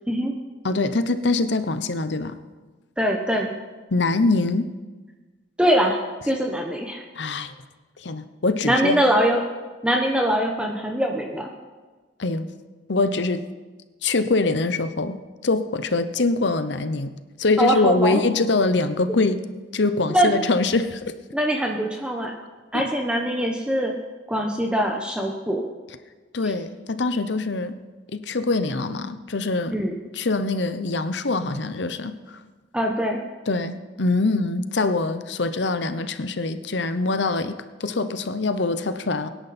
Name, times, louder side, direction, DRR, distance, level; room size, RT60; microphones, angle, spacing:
voice 1, 0.6-2.4 3.9-4.7 7.2-7.5 8.0-9.0 12.2-12.5 12.9-13.4 14.0-15.2 15.4-17.1 17.4-19.4 19.7-21.2 22.7-22.8 26.3-27.8 28.1-29.8 30.1-32.4 33.5-39.3, left 3 dB, 70° left, 11 dB, 0.8 m, -23 dB
voice 2, 3.0-3.5 5.6-6.0 6.3-7.0 8.6-9.4 9.8-11.5 17.6-18.2 20.1-20.4 21.3-22.3 22.7-23.9 24.3-25.6 29.7-29.9 32.7-33.2, equal, 5° right, 1 dB, 1.0 m, -22 dB
23.5 x 10.5 x 4.3 m, 1.3 s
head